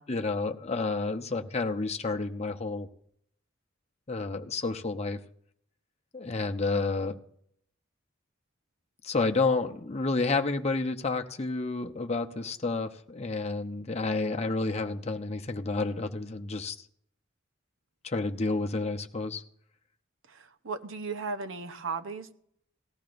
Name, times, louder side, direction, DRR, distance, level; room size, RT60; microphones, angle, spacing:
voice 1, 0.1-2.9 4.1-5.2 6.1-7.2 9.0-16.8 18.0-19.4, left 3 dB, 35° left, 4 dB, 0.8 m, -30 dB
voice 2, 20.3-22.3, right 4 dB, 90° right, 8 dB, 0.9 m, -36 dB
18.5 x 14.0 x 2.6 m, 0.68 s
head